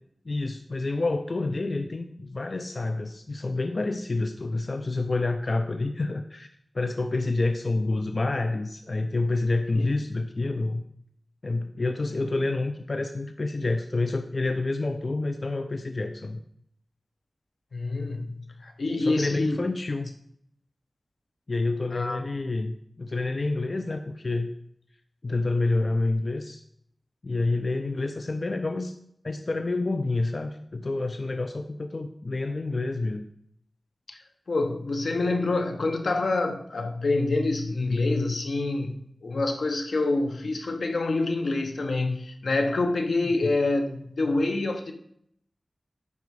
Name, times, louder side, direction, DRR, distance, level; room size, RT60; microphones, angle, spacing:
voice 1, 0.3-6.5 6.7-10.8 11.4-16.4 19.0-20.1 21.5-24.5 25.2-26.6 27.2-28.9 29.2-33.3 43.2-43.5, left 2 dB, 50° left, 0.5 m, -28 dB
voice 2, 17.7-18.3 18.6-19.6 21.9-22.2 34.1-34.2 34.5-44.9, left 2 dB, 80° left, 0.9 m, -26 dB
10.5 x 4.7 x 4.7 m
wide cardioid pair, 85°, 0 cm